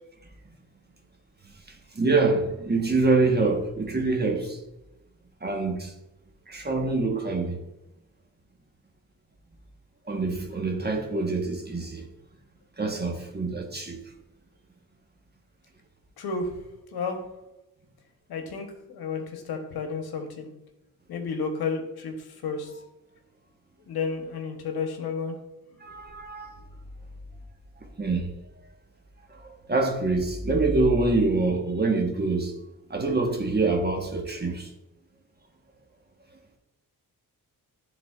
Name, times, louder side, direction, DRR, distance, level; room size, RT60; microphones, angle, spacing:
voice 1, 1.7-4.6 5.4-5.9 6.5-7.6 10.1-12.0 12.8-14.0 25.8-26.6 28.0-28.3 29.3-32.5 32.9-34.7, right 3 dB, 25° right, 1.2 m, -25 dB
voice 2, 16.2-16.5 16.9-17.2 18.3-20.5 21.1-22.1 22.4-22.7 23.9-25.4, left 4 dB, 85° left, 1.0 m, -31 dB
10.5 x 3.9 x 2.4 m
cardioid pair, 60°, 37 cm